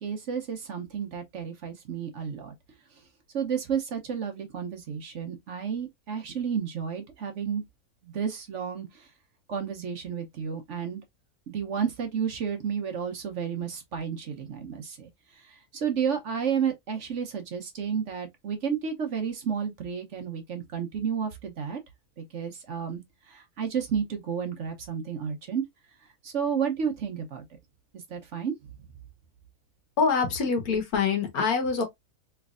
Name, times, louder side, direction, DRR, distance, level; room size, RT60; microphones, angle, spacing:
voice 1, 0.0-2.5 3.3-7.6 8.0-9.1 9.5-11.0 11.5-21.8 22.2-25.6 26.2-27.4 28.1-28.5, right 7 dB, 55° right, 1.0 m, -31 dB
voice 2, 30.0-31.8, left 5 dB, 75° left, 1.5 m, -25 dB
3.3 x 3.1 x 2.4 m
omnidirectional pair, 1.6 m